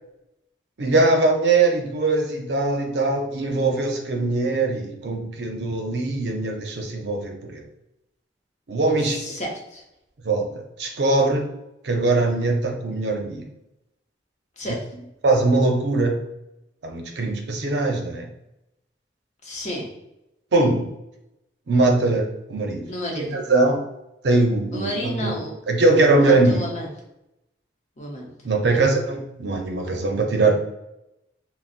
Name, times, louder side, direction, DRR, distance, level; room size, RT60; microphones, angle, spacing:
voice 1, 0.8-7.6 8.7-9.4 10.2-11.5 11.8-13.5 15.2-16.2 16.8-18.3 20.5-20.9 21.7-22.8 23.2-23.9 24.2-25.4 25.7-26.6 28.4-30.5, right 2 dB, 65° right, 3 dB, 0.5 m, -21 dB
voice 2, 9.0-9.8 14.6-14.8 19.4-19.9 22.9-23.3 24.7-25.5 26.1-26.9 28.0-28.3 28.7-28.9, equal, 40° left, -1 dB, 0.7 m, -31 dB
3.9 x 2.0 x 2.4 m, 0.87 s
head